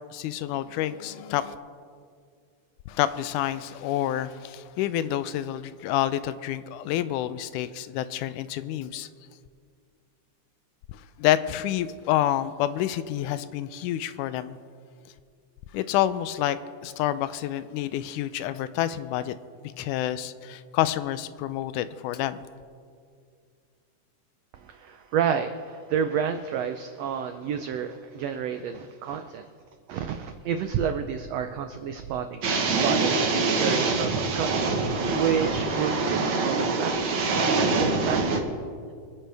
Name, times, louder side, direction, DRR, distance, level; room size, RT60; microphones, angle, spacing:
voice 1, 0.1-1.6 2.9-9.1 10.9-14.6 15.7-19.4 19.8-22.5, left 12 dB, 80° left, 14 dB, 2.0 m, -28 dB
voice 2, 24.5-29.5 29.9-33.2 33.5-34.7 35.1-38.5, right 8 dB, 85° right, 7 dB, 1.4 m, -30 dB
sound 1, 32.4-38.4, right 3 dB, 55° right, 1.5 m, -25 dB
25.5 x 10.0 x 3.4 m, 2.2 s
omnidirectional pair, 3.7 m